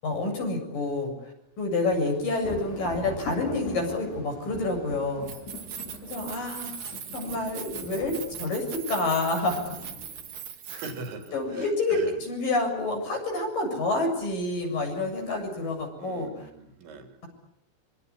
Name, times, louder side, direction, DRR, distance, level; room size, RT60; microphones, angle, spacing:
voice 1, 0.0-5.3 6.0-6.8 7.1-9.9 11.3-16.5, left 2 dB, 50° left, 3 dB, 9.1 m, -28 dB
sound 1, 1.9-10.4, left 4 dB, 65° left, 6.5 m, -42 dB
Keys jangling, 5.1-11.3, right 8 dB, 50° right, 3.6 m, -40 dB
voice 2, 10.7-12.2 16.0-17.2, right 3 dB, 80° right, 5 dB, 5.7 m, -41 dB
25.5 x 25.5 x 8.5 m, 0.81 s
omnidirectional pair, 5.2 m